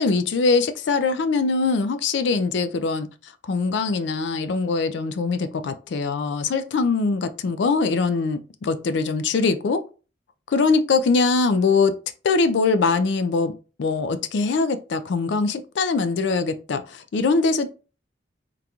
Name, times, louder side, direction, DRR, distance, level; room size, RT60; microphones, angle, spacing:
voice 1, 0.0-3.1 3.4-9.8 10.5-11.9 12.2-13.5 13.8-17.7, left 4 dB, 70° left, 0.4 m, -22 dB
3.7 x 2.3 x 2.8 m
head